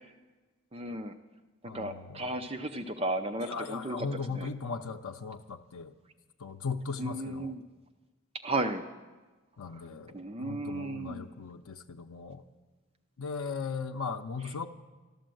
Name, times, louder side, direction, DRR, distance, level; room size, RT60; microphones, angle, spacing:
voice 1, 0.7-1.1 1.7-4.5 7.0-7.6 8.4-8.9 9.7-9.9 10.1-11.2, right 2 dB, 25° right, 8 dB, 0.5 m, -34 dB
voice 2, 1.6-2.4 3.5-5.9 6.4-7.5 9.6-12.4 13.2-14.7, left 5 dB, 85° left, 3 dB, 0.6 m, -38 dB
13.0 x 12.5 x 7.7 m, 1.2 s
head